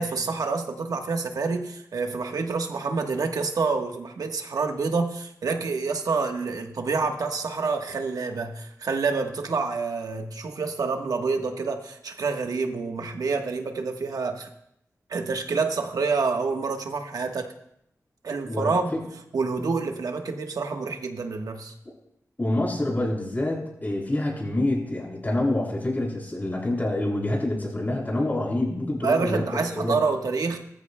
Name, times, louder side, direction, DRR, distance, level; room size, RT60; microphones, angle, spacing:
voice 1, 0.0-14.5 15.1-17.5 18.2-18.9 19.3-21.7 29.0-30.6, right 4 dB, 90° right, 4 dB, 1.2 m, -27 dB
voice 2, 18.5-19.0 22.4-30.0, left 1 dB, 30° left, -3 dB, 6.4 m, -27 dB
19.0 x 14.5 x 2.2 m, 0.76 s
wide cardioid pair, 75°, 6 cm